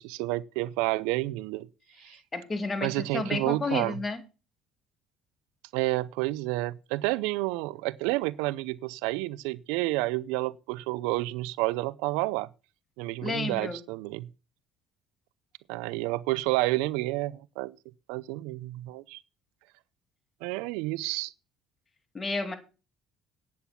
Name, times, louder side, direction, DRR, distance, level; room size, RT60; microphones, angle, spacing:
voice 1, 0.0-1.7 2.0-2.2 2.8-3.9 5.7-12.5 13.0-14.3 15.7-17.8 18.1-19.2 20.4-21.3, right 19 dB, 90° right, 0.5 m, -30 dB
voice 2, 2.3-4.2 13.2-13.8 22.1-22.5, left 3 dB, 25° left, 2.4 m, -31 dB
9.8 x 8.5 x 5.8 m
cardioid pair, 100°, 0 cm